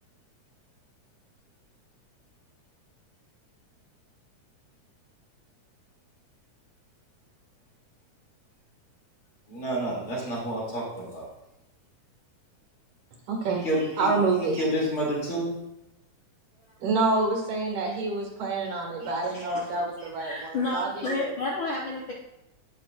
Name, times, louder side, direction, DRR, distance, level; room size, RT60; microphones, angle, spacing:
voice 1, 9.5-11.3 13.5-14.1 14.4-15.5, equal, 45° left, -4 dB, 3.3 m, -29 dB
voice 2, 13.3-13.7 14.0-14.6 16.8-21.3, right 3 dB, 75° right, 0 dB, 3.4 m, -27 dB
voice 3, 19.0-19.6 20.0-22.1, left 3 dB, 85° left, -3 dB, 1.1 m, -32 dB
17.0 x 5.9 x 2.4 m, 0.89 s
omnidirectional pair, 3.7 m